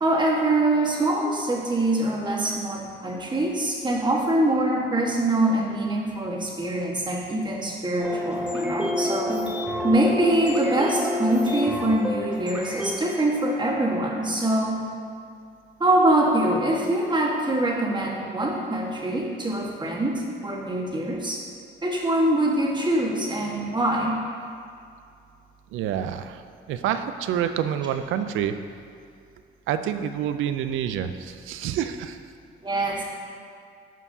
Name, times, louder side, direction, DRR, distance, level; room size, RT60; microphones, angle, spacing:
voice 1, 0.0-9.3 9.8-14.8 15.8-21.4 21.8-24.2 32.6-33.0, right 1 dB, 20° right, -3 dB, 1.4 m, -24 dB
sound 1, 8.0-13.0, left 1 dB, 5° right, 1.0 m, -28 dB
voice 2, 25.7-26.4 26.7-28.5 29.7-32.2, right 9 dB, 85° right, 10 dB, 0.4 m, -27 dB
12.5 x 4.5 x 2.7 m, 2.3 s
cardioid pair, 90°, 20 cm